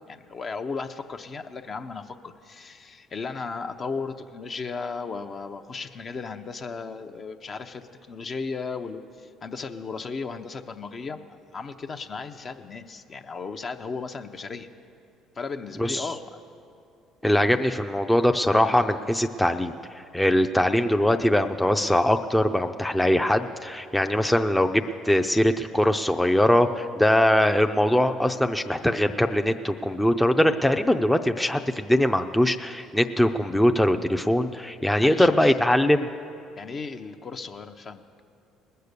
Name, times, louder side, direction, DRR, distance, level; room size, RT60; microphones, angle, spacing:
voice 1, 0.1-11.3 11.5-14.7 15.4-16.4 35.0-35.5 36.6-38.0, left 4 dB, 45° left, 7 dB, 0.7 m, -35 dB
voice 2, 17.2-19.7 20.1-36.1, left 1 dB, 5° left, 5 dB, 0.5 m, -22 dB
19.5 x 6.7 x 6.7 m, 2.5 s
supercardioid pair, 70°, 0 cm